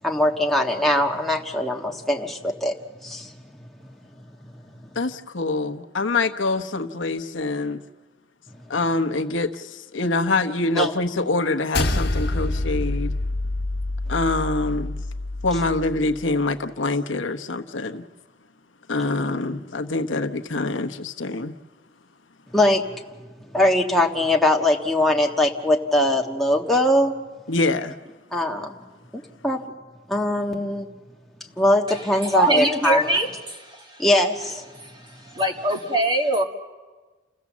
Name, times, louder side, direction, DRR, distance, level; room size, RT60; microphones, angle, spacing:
voice 1, 0.0-2.8 3.0-3.7 4.2-4.3 4.8-4.9 8.5-8.6 10.8-10.9 22.5-27.1 28.3-28.8 29.1-29.8 30.1-30.9 31.6-33.1 34.0-34.6, left 1 dB, ahead, -1 dB, 1.5 m, -22 dB
voice 2, 4.9-7.8 8.7-13.1 14.1-14.9 15.4-18.0 18.9-21.5 27.5-27.9, left 3 dB, 75° left, 6 dB, 1.0 m, -25 dB
sound 1, 11.7-16.3, left 2 dB, 60° left, 1.4 m, -27 dB
voice 3, 32.1-34.0 34.8-34.9 35.3-36.4, right 1 dB, 25° right, 3 dB, 1.8 m, -23 dB
30.0 x 15.5 x 7.3 m, 1.3 s
head